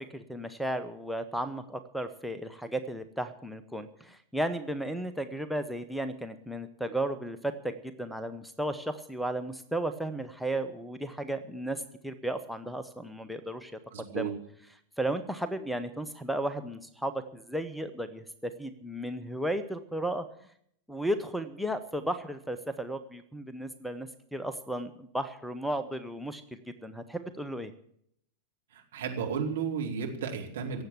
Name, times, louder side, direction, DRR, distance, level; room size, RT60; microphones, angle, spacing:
voice 1, 0.1-13.8 14.1-14.3 15.0-20.3 20.9-27.7, right 1 dB, ahead, 7 dB, 0.8 m, -34 dB
voice 2, 13.9-14.3 28.7-30.8, right 6 dB, 60° right, 1 dB, 2.6 m, -33 dB
17.0 x 7.9 x 7.3 m, 0.69 s
figure-of-eight pair, 90°, 0 cm